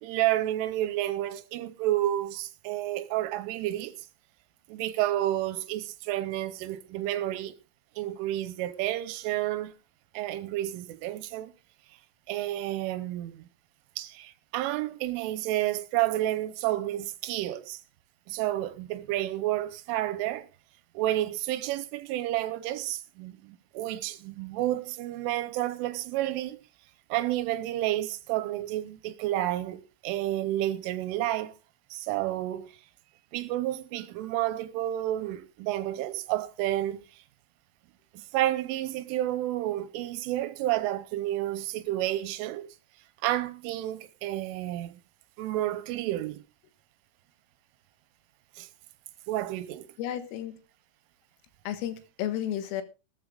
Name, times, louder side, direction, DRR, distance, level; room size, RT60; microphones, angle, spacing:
voice 1, 0.0-4.1 4.7-7.6 8.0-9.7 10.1-11.5 12.3-13.5 14.0-17.8 18.3-20.5 20.9-26.6 27.1-31.5 31.9-32.7 33.3-37.2 38.1-42.8 43.2-45.0 45.4-46.4 48.6-48.7 49.3-49.9, right 14 dB, 80° right, 3.2 m, -30 dB
voice 2, 50.0-50.5 51.7-52.8, left 11 dB, 90° left, 4.1 m, -32 dB
18.0 x 14.0 x 2.5 m
omnidirectional pair, 5.9 m